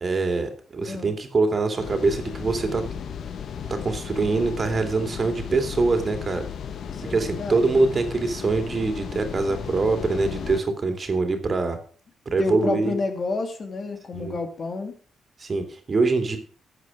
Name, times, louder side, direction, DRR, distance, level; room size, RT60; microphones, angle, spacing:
voice 1, 0.0-2.8 3.7-6.4 7.1-11.8 12.3-12.9 14.1-14.4 15.4-16.4, right 3 dB, 45° right, 6 dB, 2.6 m, -24 dB
voice 2, 0.8-1.1 6.9-7.9 12.4-15.0, left 3 dB, 50° left, 6 dB, 2.3 m, -30 dB
sound 1, 1.8-10.6, left 7 dB, 70° left, 1.0 m, -35 dB
12.0 x 8.1 x 4.9 m, 0.42 s
supercardioid pair, 55°, 0 cm